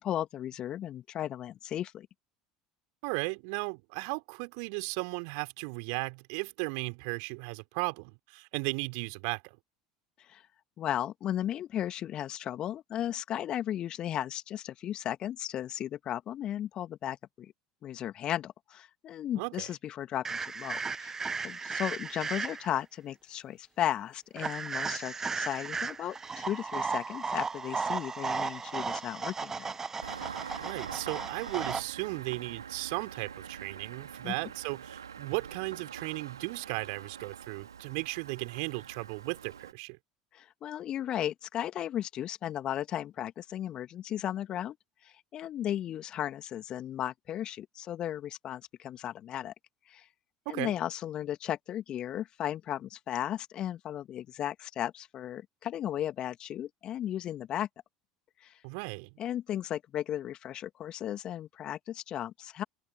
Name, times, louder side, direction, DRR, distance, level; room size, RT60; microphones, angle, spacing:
voice 1, 0.0-2.1 10.2-10.4 10.8-17.5 17.8-29.8 34.2-34.3 40.3-44.8 45.0-49.5 49.9-50.1 50.5-57.7 58.4-58.6 59.2-62.6, left 11 dB, 40° left, 2.6 m, -35 dB
voice 2, 3.0-9.5 19.3-19.7 30.6-40.0 50.5-50.8 58.6-59.1, right 40 dB or more, 60° right, 4.1 m, -36 dB
sound 1, 20.3-22.8 24.4-31.8, right 4 dB, 20° right, 1.2 m, -35 dB
Engine starting, 30.0-39.7, right 7 dB, 80° right, 2.9 m, -45 dB
open air
figure-of-eight pair, 70°, 2 cm